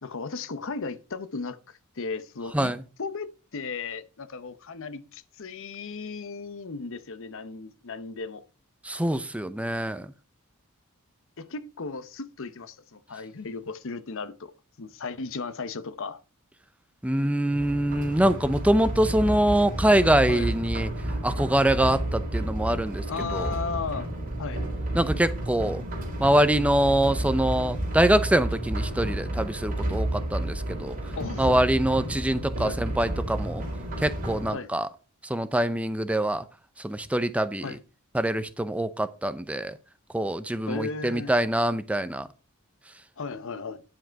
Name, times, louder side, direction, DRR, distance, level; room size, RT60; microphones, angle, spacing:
voice 1, 0.0-2.7 3.0-8.5 11.4-14.5 14.8-16.2 20.3-20.5 23.1-24.1 24.4-24.6 31.2-31.6 32.6-32.8 34.5-34.7 37.6-37.8 40.7-41.3 43.2-43.8, left 4 dB, 60° left, 0.8 m, -35 dB
voice 2, 8.8-10.1 17.0-20.9 21.2-23.0 23.3-23.5 24.9-25.8 26.2-30.9 31.4-33.6 34.0-34.9 35.2-36.4 36.8-37.7 38.1-39.8 40.1-42.3, right 1 dB, 5° right, 0.5 m, -24 dB
sound 1, 17.5-34.5, right 1 dB, 40° right, 4.7 m, -31 dB
10.5 x 7.5 x 4.6 m
head